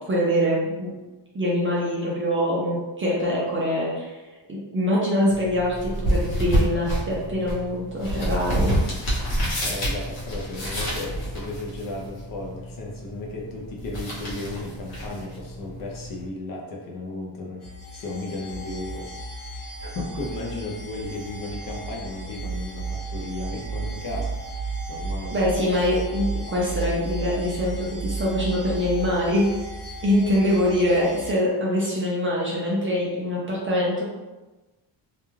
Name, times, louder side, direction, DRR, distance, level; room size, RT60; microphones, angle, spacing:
voice 1, 0.1-0.9 1.3-4.2 4.5-8.7 25.3-29.4 30.0-34.0, left 1 dB, 30° right, -5 dB, 0.3 m, -24 dB
sound 1, 5.3-16.3, right 1 dB, 65° left, 1.0 m, -29 dB
voice 2, 9.6-24.4 24.9-25.4, left 2 dB, 45° left, -1 dB, 0.4 m, -35 dB
sound 2, 17.6-31.3, right 3 dB, 90° left, 0.8 m, -34 dB
2.3 x 2.2 x 3.0 m, 1.1 s
wide cardioid pair, 175°, 48 cm